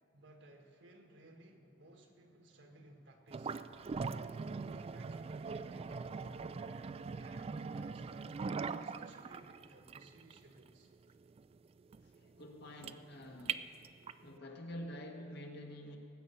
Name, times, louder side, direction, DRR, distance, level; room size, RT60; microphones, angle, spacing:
voice 1, 0.1-3.5 4.1-8.4 8.8-10.9, right 1 dB, 70° right, 3 dB, 1.6 m, -59 dB
sound 1, 3.3-14.3, right 5 dB, 30° right, 0.3 m, -42 dB
voice 2, 12.0-13.7 14.2-16.0, left 1 dB, 60° left, 2 dB, 1.5 m, -48 dB
19.0 x 8.3 x 5.6 m, 2.6 s
head